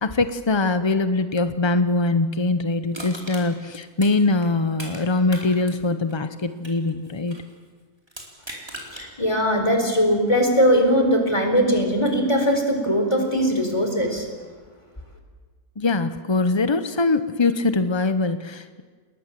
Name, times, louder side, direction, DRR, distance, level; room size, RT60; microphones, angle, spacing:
voice 1, 0.0-7.4 15.8-18.8, left 3 dB, 35° left, 11 dB, 0.4 m, -22 dB
Crushing, 2.9-5.0 5.3-7.5 8.1-9.1 9.5-9.6, right 1 dB, 15° right, 4.4 m, -39 dB
voice 2, 8.9-14.3, equal, 20° left, 4 dB, 4.2 m, -20 dB
29.0 x 20.5 x 7.5 m, 1.5 s
omnidirectional pair, 1.6 m